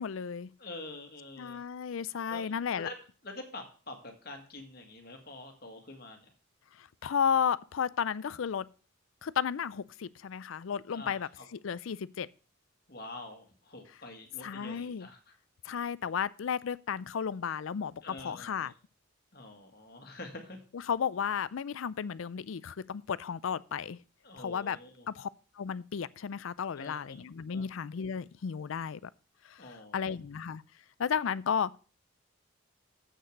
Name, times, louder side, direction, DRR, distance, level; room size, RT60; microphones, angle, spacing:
voice 1, 0.0-0.5 1.4-2.9 6.8-8.7 9.2-12.3 14.4-15.1 15.6-18.7 20.9-24.0 24.4-24.8 25.1-25.3 25.6-29.0 29.5-29.6 29.9-30.6 31.0-31.7, left 7 dB, 75° left, 0.4 m, -33 dB
voice 2, 0.6-1.6 2.3-3.0 3.2-6.3 10.9-11.5 12.9-15.3 18.0-18.7 19.3-20.6 24.2-25.1 26.8-27.1 27.5-27.7 29.6-30.2, left 2 dB, 50° left, 1.8 m, -46 dB
7.8 x 6.5 x 6.6 m
head